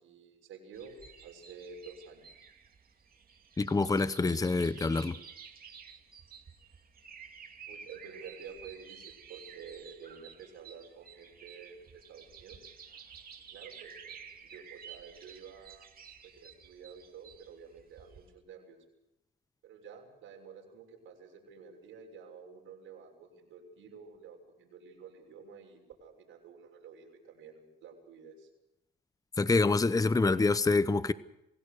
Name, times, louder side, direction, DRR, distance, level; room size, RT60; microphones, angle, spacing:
voice 1, 0.0-2.3 7.7-12.6 13.5-14.2 14.4-15.9 16.2-18.8 19.6-28.5, right 6 dB, 85° right, 6.5 m, -50 dB
sound 1, 0.7-18.3, right 7 dB, 50° right, 2.6 m, -52 dB
voice 2, 3.6-5.2 29.4-31.1, left 3 dB, 15° left, 0.8 m, -26 dB
27.5 x 17.0 x 6.8 m
cardioid pair, 90°, 20 cm